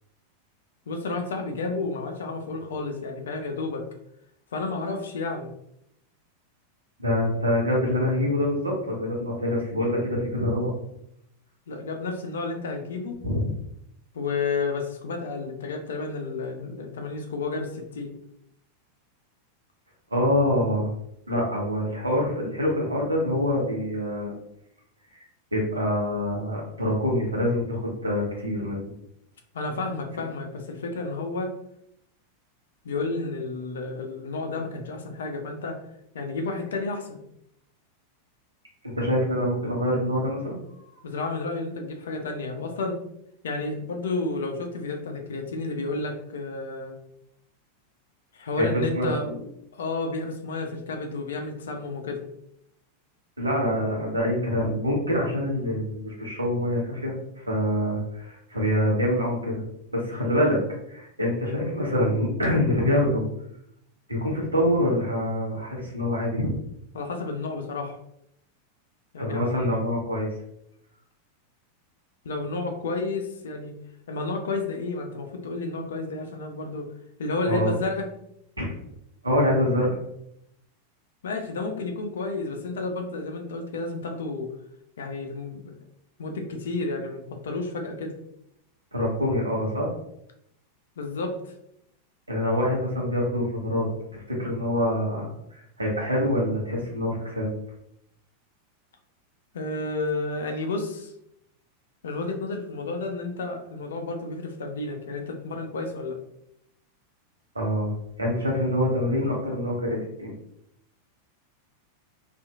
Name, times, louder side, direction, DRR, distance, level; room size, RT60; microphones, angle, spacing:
voice 1, 0.9-3.9 4.5-5.5 11.7-13.2 14.1-18.1 29.5-31.5 32.8-35.8 36.1-37.2 41.0-43.0 43.4-47.0 48.3-49.3 49.7-52.2 66.9-68.0 69.1-69.5 72.2-73.8 74.1-76.9 77.2-78.1 81.2-84.5 85.0-85.8 86.2-88.1 91.0-91.5 99.5-101.1 102.0-106.2, left 3 dB, 65° left, 4 dB, 0.4 m, -31 dB
voice 2, 7.0-10.7 13.2-13.5 20.1-20.9 21.3-24.3 25.1-25.2 25.5-28.9 38.9-40.6 48.6-49.1 53.4-59.6 59.9-60.6 60.9-63.2 64.1-66.5 69.2-70.3 77.5-77.8 78.6-78.8 79.2-79.9 88.9-89.9 92.3-97.5 107.5-107.9 108.2-110.3, left 1 dB, 80° right, -2 dB, 0.8 m, -25 dB
2.8 x 2.4 x 2.3 m, 0.75 s
figure-of-eight pair, 90°, 0 cm